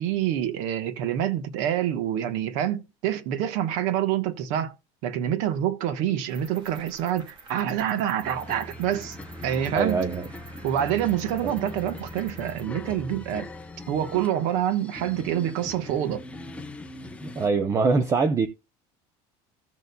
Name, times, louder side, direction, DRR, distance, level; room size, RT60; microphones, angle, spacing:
voice 1, 0.0-4.7 5.0-9.2 9.4-10.0 10.6-13.5 13.9-16.2, right 10 dB, 70° right, 1.2 m, -26 dB
Cricket, 6.3-12.6, right 3 dB, 40° right, 1.8 m, -49 dB
sound 1, 8.2-17.5, left 1 dB, 10° left, 0.7 m, -40 dB
voice 2, 9.7-10.3 11.4-11.5 17.2-18.5, right 4 dB, 20° right, 0.7 m, -23 dB
16.0 x 6.8 x 2.2 m
cardioid pair, 145°, 13 cm